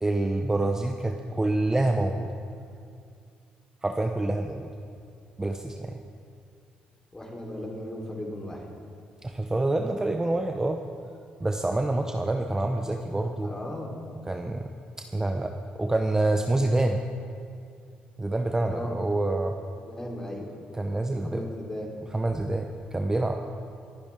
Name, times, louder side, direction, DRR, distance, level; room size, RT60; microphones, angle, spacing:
voice 1, 0.0-2.3 3.8-4.7 5.4-6.0 9.2-10.8 11.4-13.5 14.3-14.7 15.0-17.0 18.2-19.6 20.7-21.5 22.1-23.4, right 2 dB, 15° right, 4 dB, 0.8 m, -27 dB
voice 2, 7.1-8.7 13.4-14.0 18.6-18.9 19.7-20.6 21.2-21.9, left 1 dB, 20° left, -1 dB, 3.7 m, -37 dB
23.5 x 9.7 x 3.7 m, 2.4 s
supercardioid pair, 60°, 3 cm